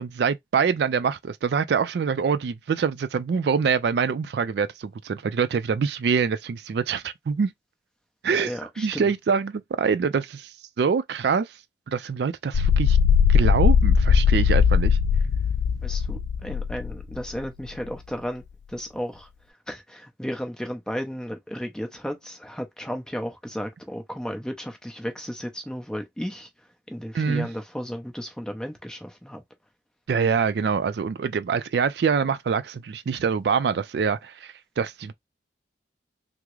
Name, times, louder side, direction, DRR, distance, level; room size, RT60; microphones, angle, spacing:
voice 1, 0.0-7.5 8.2-11.5 11.9-13.0 13.3-15.0 27.1-27.5 30.1-35.1, right 6 dB, 65° right, 0.3 m, -25 dB
voice 2, 8.3-9.1 15.8-18.4 18.7-19.3 19.7-26.5 26.9-29.4, equal, 5° left, 0.6 m, -34 dB
sound 1, 12.5-17.2, left 7 dB, 80° left, 0.3 m, -19 dB
3.5 x 2.0 x 3.0 m
head